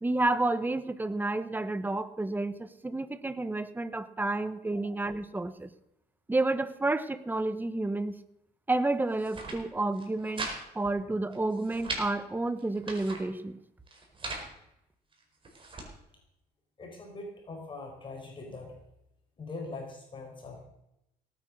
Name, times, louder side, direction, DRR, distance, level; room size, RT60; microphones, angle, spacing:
voice 1, 0.0-5.7 6.3-8.2 8.7-10.5 10.7-13.6, right 2 dB, 10° right, 13 dB, 1.1 m, -30 dB
sound 1, 9.1-9.6 9.9-10.6 10.8-10.9 11.3-12.0 12.6-13.2 13.9-14.5 15.1-15.9, right 3 dB, 30° right, 4.7 m, -39 dB
voice 2, 16.8-18.7 19.4-20.6, left 3 dB, 30° left, 0 dB, 4.4 m, -42 dB
18.0 x 9.5 x 6.5 m, 0.84 s
cardioid pair, 110°, 17 cm